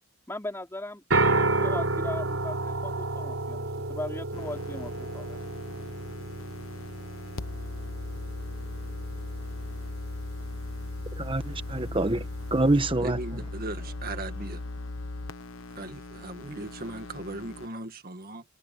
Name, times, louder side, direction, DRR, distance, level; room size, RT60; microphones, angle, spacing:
voice 1, 0.3-1.0 1.4-5.4, left 1 dB, 15° left, 4.8 m, -38 dB
sound 1, 1.1-12.9, right 2 dB, 80° right, 3.8 m, -32 dB
sound 2, 4.3-17.7, left 2 dB, 80° left, 1.1 m, -38 dB
voice 2, 11.2-13.2, right 2 dB, 25° right, 1.1 m, -26 dB
voice 3, 13.0-14.6 15.8-18.4, right 2 dB, 45° right, 1.8 m, -38 dB
open air
head